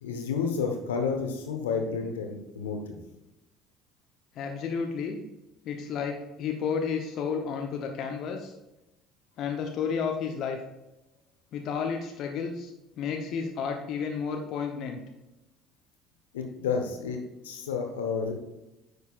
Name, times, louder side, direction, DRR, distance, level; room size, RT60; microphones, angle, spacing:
voice 1, 0.0-2.9 16.3-18.3, left 5 dB, 75° left, 4 dB, 1.1 m, -30 dB
voice 2, 4.3-5.2 5.6-8.5 9.4-10.6 11.5-15.0, left 6 dB, 50° left, 3 dB, 0.8 m, -32 dB
9.7 x 6.5 x 2.5 m, 0.96 s
figure-of-eight pair, 60°, 0 cm